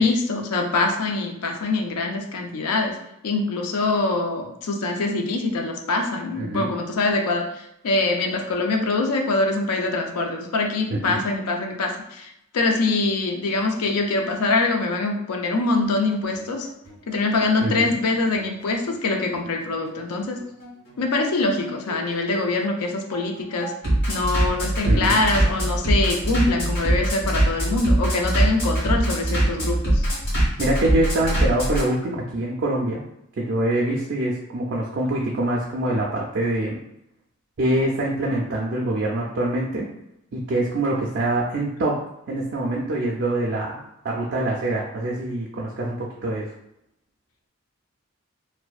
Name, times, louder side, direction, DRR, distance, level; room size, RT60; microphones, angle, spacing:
voice 1, 0.0-3.0 3.2-16.7 17.1-20.4 21.0-23.7 24.1-30.1, left 3 dB, 85° left, 3 dB, 0.4 m, -24 dB
voice 2, 6.4-6.7 10.9-11.2 17.6-17.9 24.9-25.2 30.6-33.0 33.4-36.8 37.6-39.9 40.3-42.0 42.3-46.5, right 1 dB, 50° right, -3 dB, 0.3 m, -24 dB
Bass drum, 15.9-31.8, right 1 dB, 45° left, 1.3 m, -23 dB
2.5 x 2.1 x 2.3 m, 0.81 s
head